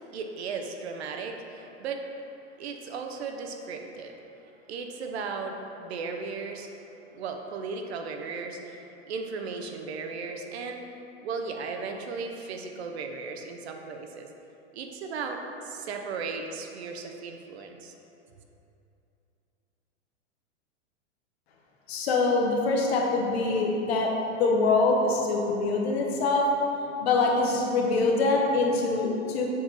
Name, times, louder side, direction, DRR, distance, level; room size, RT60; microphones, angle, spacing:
voice 1, 0.1-2.0 2.6-4.2 4.7-6.7 7.1-10.9 11.2-14.3 14.7-17.9, right 4 dB, 60° right, 4 dB, 0.7 m, -36 dB
voice 2, 21.9-24.1 24.4-26.4 27.0-29.4, left 3 dB, 60° left, 0 dB, 1.1 m, -24 dB
7.5 x 3.7 x 4.3 m, 2.8 s
supercardioid pair, 170°, 36 cm